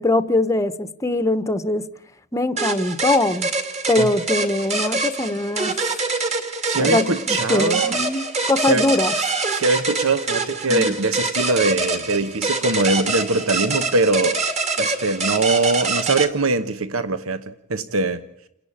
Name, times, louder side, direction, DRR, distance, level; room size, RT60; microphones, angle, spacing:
voice 1, 0.0-1.8 2.3-3.5 3.9-5.7 6.7-9.1 10.7-10.9, left 2 dB, 15° left, 0.9 m, -22 dB
sound 1, 2.6-16.3, right 3 dB, 35° right, 2.7 m, -25 dB
voice 2, 6.7-8.0 8.7-8.9 9.5-14.4 14.8-18.2, right 3 dB, 90° right, 1.1 m, -22 dB
29.5 x 11.0 x 8.6 m
head